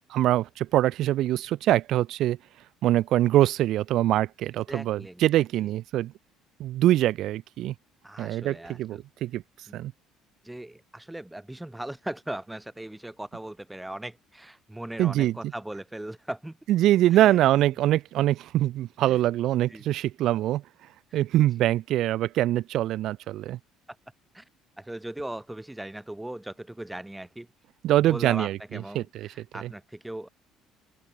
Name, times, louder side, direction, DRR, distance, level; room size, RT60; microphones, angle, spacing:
voice 1, 0.1-2.4 2.8-6.1 6.6-7.7 8.2-9.4 9.7-9.9 15.0-15.3 16.7-20.6 21.1-23.6 27.8-28.6 28.9-29.0 29.6-29.7, right 14 dB, 55° right, 1.0 m, -23 dB
voice 2, 4.7-5.7 8.0-9.0 9.7-9.8 10.4-16.6 17.1-17.4 17.9-18.0 19.0-19.2 19.7-19.9 21.1-21.2 21.6-21.7 24.3-24.5 24.8-27.5 28.1-30.3, right 1 dB, 10° right, 5.9 m, -39 dB
open air
figure-of-eight pair, 50°, 0 cm